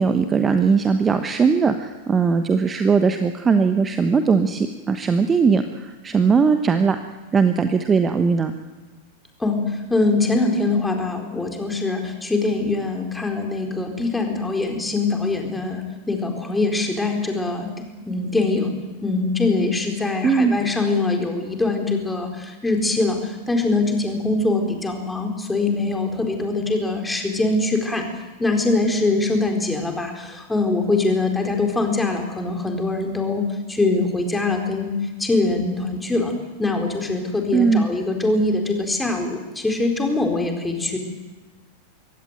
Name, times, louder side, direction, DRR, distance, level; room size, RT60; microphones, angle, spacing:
voice 1, 0.0-7.0 7.3-8.5 20.2-20.6 37.5-37.9, right 5 dB, 20° right, 8 dB, 1.1 m, -19 dB
voice 2, 9.4-18.7 19.0-28.1 28.4-36.3 36.6-41.0, left 3 dB, 10° left, 3 dB, 4.3 m, -23 dB
23.5 x 16.5 x 9.1 m, 1.2 s
figure-of-eight pair, 90°, 0 cm